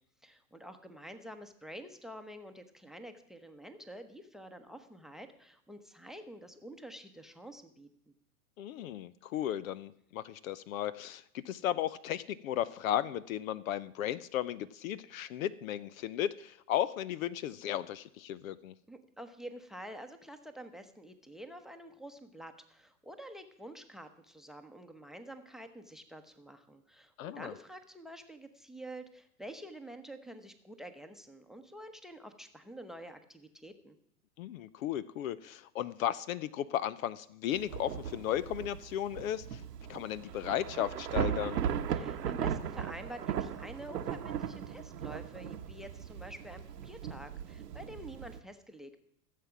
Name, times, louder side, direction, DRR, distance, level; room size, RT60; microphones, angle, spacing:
voice 1, 0.2-7.9 18.9-34.0 41.9-49.0, right 1 dB, ahead, 10 dB, 0.9 m, -48 dB
voice 2, 8.6-18.7 27.2-27.5 34.4-39.6 39.9-41.6, left 11 dB, 60° left, 18 dB, 0.7 m, -35 dB
Thunder / Rain, 37.5-48.4, right 8 dB, 80° right, 1.1 m, -37 dB
15.5 x 7.6 x 5.9 m, 0.73 s
hypercardioid pair, 105°, 47 cm